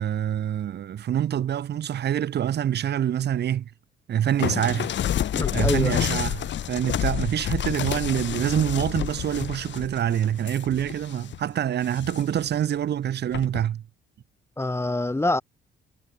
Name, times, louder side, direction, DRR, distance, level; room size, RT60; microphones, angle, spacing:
voice 1, 0.0-3.7 4.1-4.9 5.5-13.8, right 10 dB, 60° right, 1.1 m, -26 dB
sound 1, 4.4-11.4 11.8-12.5 13.3-13.7, left 11 dB, 65° left, 2.0 m, -29 dB
voice 2, 5.3-6.0 14.6-15.4, left 2 dB, 10° left, 1.3 m, -25 dB
cardioid pair, 90°, 20 cm